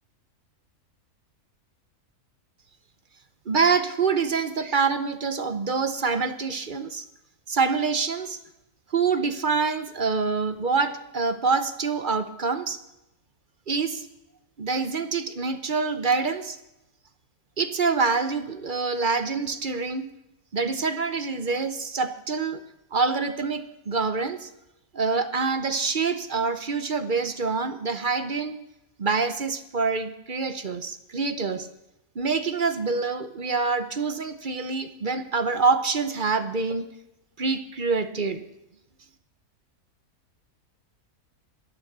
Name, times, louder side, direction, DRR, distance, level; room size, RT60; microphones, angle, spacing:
voice 1, 3.5-7.0 7.5-8.4 8.9-12.8 13.7-14.1 14.6-16.6 17.6-20.1 20.5-22.6 22.9-24.5 24.9-28.6 29.0-31.7 32.1-36.9 37.4-38.4, right 4 dB, 40° right, 10 dB, 0.8 m, -26 dB
12.0 x 11.5 x 6.7 m, 0.87 s
omnidirectional pair, 1.6 m